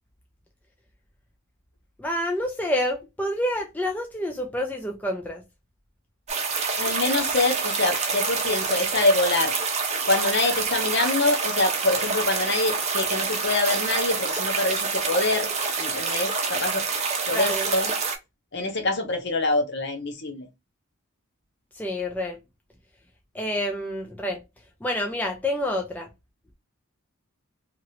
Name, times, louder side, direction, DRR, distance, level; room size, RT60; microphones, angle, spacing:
voice 1, 2.0-5.4 17.3-17.7 21.7-22.4 23.3-24.4 24.8-26.1, left 1 dB, 5° left, 0.4 m, -28 dB
sound 1, 6.3-18.2, right 5 dB, 30° right, 0.7 m, -27 dB
voice 2, 6.8-9.5 10.1-15.5 15.8-16.8 17.3-17.9 18.5-20.5, left 2 dB, 50° left, 0.8 m, -25 dB
2.9 x 2.6 x 2.7 m
head